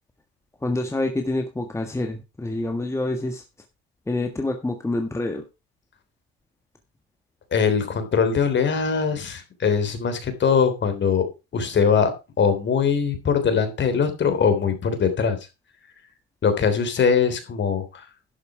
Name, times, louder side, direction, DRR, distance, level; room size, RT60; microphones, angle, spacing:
voice 1, 0.6-3.4 4.1-5.4, left 2 dB, 10° left, 4 dB, 1.6 m, -27 dB
voice 2, 7.5-11.2 11.5-12.1 12.4-15.4 16.4-18.1, left 6 dB, 40° left, 9 dB, 3.4 m, -21 dB
12.0 x 6.8 x 4.9 m, 0.28 s
supercardioid pair, 100°, 30 cm